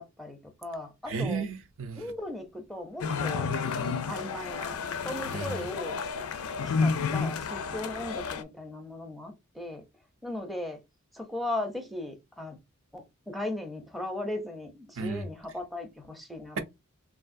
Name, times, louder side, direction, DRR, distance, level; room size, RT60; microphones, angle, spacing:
voice 1, 0.0-1.4 2.0-3.5 4.0-4.8 5.0-6.0 6.7-9.8 10.2-10.8 11.1-12.6 12.9-16.6, left 1 dB, ahead, 0.5 m, -37 dB
voice 2, 1.1-2.1 5.3-5.7 15.0-15.2, right 4 dB, 70° right, 0.5 m, -33 dB
sound 1, 3.0-8.4, left 5 dB, 80° left, 0.4 m, -31 dB
3.4 x 2.5 x 2.5 m
head